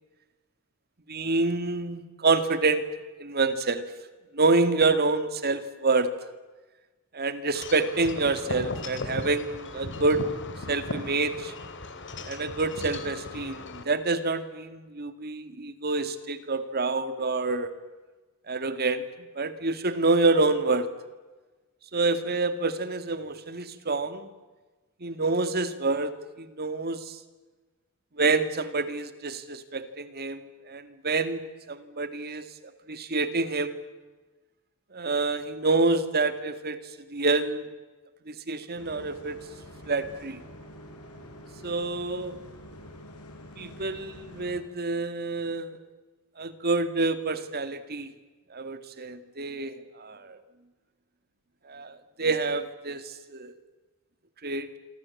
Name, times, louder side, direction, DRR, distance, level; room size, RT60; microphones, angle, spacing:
voice 1, 1.1-2.9 3.2-3.8 4.3-6.1 7.1-10.2 10.7-11.5 12.2-17.7 18.5-19.0 19.4-20.9 21.9-24.3 25.0-27.2 28.2-31.4 31.7-32.5 32.9-33.7 34.9-36.8 37.1-37.7 38.3-39.4 39.9-40.4 41.6-42.4 43.6-45.8 46.4-48.1 48.5-50.4 51.7-53.5 54.4-54.7, right 3 dB, 45° right, 11 dB, 2.2 m, -27 dB
Wind chime / Wind, 7.5-13.8, left 2 dB, 55° left, 3.2 m, -37 dB
Bus, 38.7-44.6, equal, 85° left, 6.3 m, -46 dB
28.0 x 24.5 x 8.6 m, 1.2 s
head